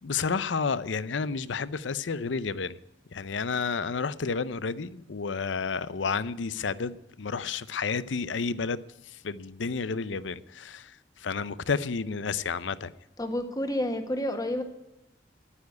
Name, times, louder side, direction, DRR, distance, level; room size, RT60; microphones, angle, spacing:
voice 1, 0.0-2.8 3.1-12.9, left 5 dB, 85° left, 17 dB, 0.6 m, -31 dB
voice 2, 13.2-14.6, left 1 dB, 20° left, 5 dB, 1.4 m, -29 dB
10.5 x 9.7 x 9.3 m, 0.86 s
head